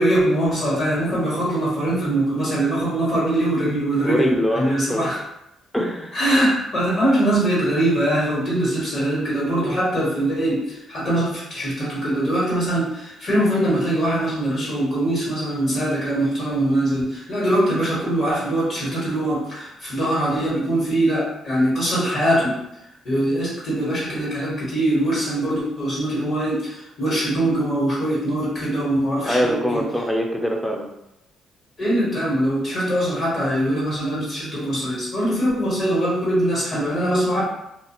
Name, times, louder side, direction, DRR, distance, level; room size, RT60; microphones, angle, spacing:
voice 1, 0.0-5.2 6.1-10.6 10.9-22.5 23.0-26.7 27.0-29.8 31.8-37.4, right 1 dB, 55° left, -7 dB, 1.3 m, -22 dB
voice 2, 4.0-5.1 5.7-6.2 29.2-30.9, equal, 5° left, 1 dB, 0.5 m, -23 dB
2.5 x 2.4 x 2.8 m, 0.84 s
cardioid pair, 90°, 0 cm